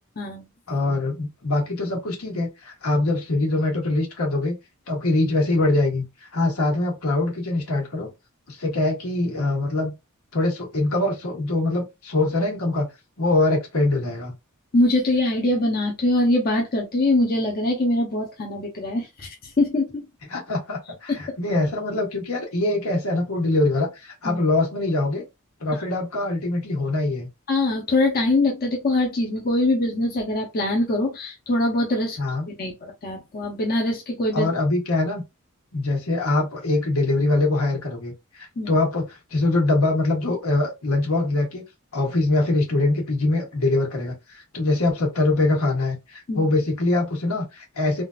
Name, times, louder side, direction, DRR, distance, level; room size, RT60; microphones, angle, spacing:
voice 1, 0.2-0.5 14.7-20.0 24.2-24.4 27.5-32.2 32.6-34.5 38.6-38.8 46.3-46.5, left 2 dB, 45° left, 0.8 m, -23 dB
voice 2, 0.7-4.5 4.9-6.0 6.3-8.1 8.5-9.9 10.3-12.9 13.2-14.3 20.3-25.2 25.6-27.3 32.2-32.4 34.3-35.2 35.7-41.6 41.9-48.0, left 2 dB, 80° left, 1.5 m, -23 dB
3.7 x 2.6 x 2.4 m
head